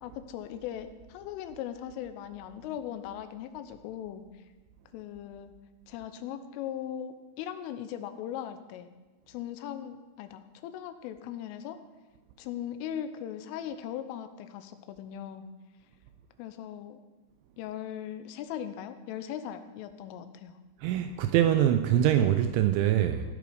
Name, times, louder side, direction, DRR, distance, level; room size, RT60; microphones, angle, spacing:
voice 1, 0.0-4.2 4.9-5.5 5.9-8.9 9.3-11.8 12.4-15.4 16.4-17.0 17.6-20.6, left 10 dB, 90° left, 9 dB, 3.4 m, -39 dB
voice 2, 20.8-23.2, right 11 dB, 80° right, 8 dB, 2.9 m, -24 dB
16.0 x 8.5 x 5.1 m, 1.2 s
omnidirectional pair, 5.6 m